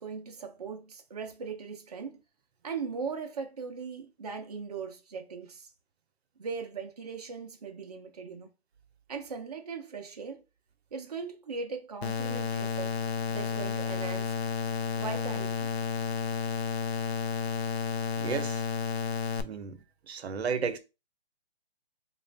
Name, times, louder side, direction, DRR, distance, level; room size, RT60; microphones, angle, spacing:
voice 1, 0.0-2.2 2.6-5.7 6.4-8.5 9.1-10.4 10.9-12.9 13.3-14.3 14.9-15.7, right 5 dB, 35° right, 0.5 m, -39 dB
sound 1, 12.0-19.4, left 6 dB, 70° left, 0.6 m, -31 dB
voice 2, 18.2-18.6 19.4-20.8, right 6 dB, 70° right, 0.8 m, -33 dB
3.5 x 2.4 x 3.2 m
hypercardioid pair, 175°, 33 cm